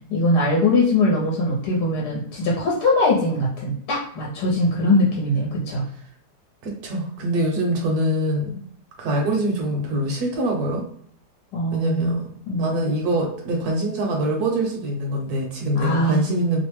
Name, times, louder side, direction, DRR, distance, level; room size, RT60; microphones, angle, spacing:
voice 1, 0.1-5.8 11.5-12.2 12.5-12.9 15.7-16.6, left 1 dB, 75° left, -4 dB, 1.3 m, -21 dB
voice 2, 6.6-8.6 9.0-10.8 11.7-12.2 12.5-16.6, right 1 dB, 70° right, 1 dB, 1.1 m, -24 dB
3.1 x 2.1 x 3.1 m, 0.64 s
omnidirectional pair, 1.8 m